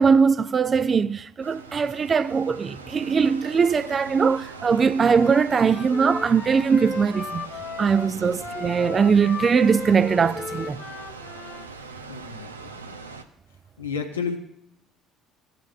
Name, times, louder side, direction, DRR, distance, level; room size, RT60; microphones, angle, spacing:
voice 1, 0.0-7.4 7.8-10.8, right 6 dB, 35° right, 0.4 m, -21 dB
sound 1, 1.4-13.2, right 4 dB, 85° right, 0.6 m, -41 dB
Wind instrument woodwind instrument, 5.1-11.7, left 4 dB, 25° left, 0.9 m, -36 dB
voice 2, 8.1-8.4 12.1-13.0 13.8-14.4, left 6 dB, 85° left, 1.1 m, -32 dB
17.0 x 9.3 x 2.5 m
figure-of-eight pair, 55°, 0 cm